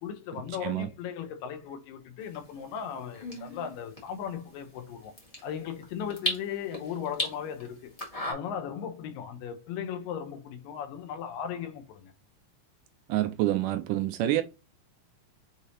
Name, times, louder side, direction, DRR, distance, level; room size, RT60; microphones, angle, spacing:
voice 1, 0.0-5.1 5.4-7.9 8.3-12.1, left 8 dB, 80° left, 2.5 m, -37 dB
sound 1, 2.2-8.3, left 1 dB, 55° left, 0.4 m, -38 dB
voice 2, 13.1-14.4, right 14 dB, 80° right, 2.0 m, -27 dB
6.6 x 2.8 x 2.9 m
omnidirectional pair, 4.0 m